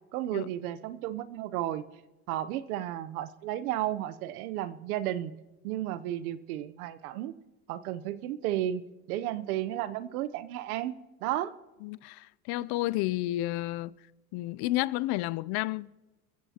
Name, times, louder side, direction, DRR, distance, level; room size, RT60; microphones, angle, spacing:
voice 1, 0.1-1.8 2.3-5.3 5.6-7.3 7.7-10.9 11.2-11.5, right 13 dB, 85° right, 0.9 m, -33 dB
voice 2, 11.8-13.9 14.3-15.9, left 17 dB, 65° left, 0.6 m, -31 dB
29.0 x 15.0 x 2.9 m
supercardioid pair, 90°, 42 cm